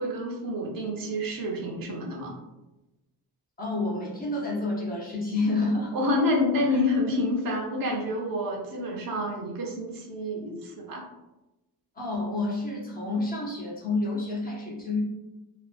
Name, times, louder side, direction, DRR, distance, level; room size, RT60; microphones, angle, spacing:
voice 1, 0.0-2.4 5.9-11.0, left 1 dB, 60° right, -1 dB, 0.6 m, -28 dB
voice 2, 3.6-6.0 6.7-6.8 12.0-15.0, left 2 dB, 25° left, -4 dB, 0.5 m, -29 dB
2.4 x 2.3 x 2.4 m, 1.0 s
wide cardioid pair, 170°, 39 cm